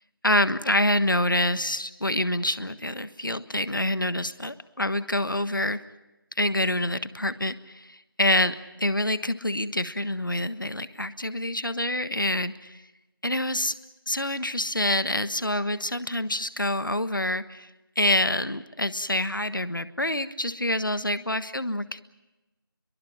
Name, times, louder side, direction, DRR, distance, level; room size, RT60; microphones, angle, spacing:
voice 1, 0.2-5.8 6.4-12.8 13.2-13.7 14.1-17.7 17.9-22.0, left 1 dB, 60° left, 13 dB, 1.4 m, -26 dB
29.0 x 23.0 x 5.9 m, 1.0 s
figure-of-eight pair, 175°, 12 cm